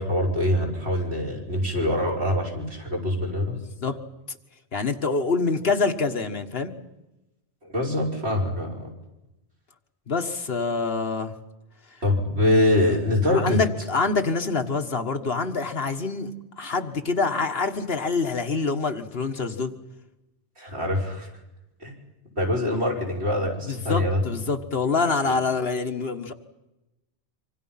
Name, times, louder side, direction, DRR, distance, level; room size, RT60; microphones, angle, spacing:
voice 1, 0.0-3.5 7.6-8.9 12.0-13.6 20.6-21.3 21.8-21.9 22.4-24.2 25.2-25.3, left 1 dB, 70° right, -2 dB, 5.6 m, -24 dB
voice 2, 4.7-6.7 10.1-11.3 13.3-16.3 16.6-19.7 22.7-22.8 23.7-26.3, left 4 dB, 65° left, 6 dB, 1.7 m, -26 dB
26.0 x 25.5 x 5.7 m, 0.98 s
omnidirectional pair, 1.1 m